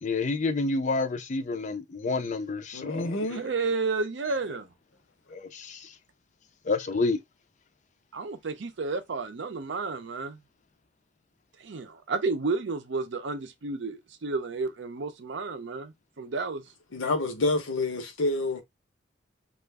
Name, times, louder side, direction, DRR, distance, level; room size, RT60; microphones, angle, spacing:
voice 1, 0.0-3.4 5.3-5.9 6.7-7.2, left 3 dB, 40° left, 0.4 m, -29 dB
voice 2, 2.7-3.4 16.9-18.6, left 2 dB, 85° left, 0.9 m, -28 dB
voice 3, 3.3-4.7 8.1-10.4 11.6-16.6, right 3 dB, 65° right, 0.5 m, -31 dB
2.4 x 2.4 x 3.3 m
head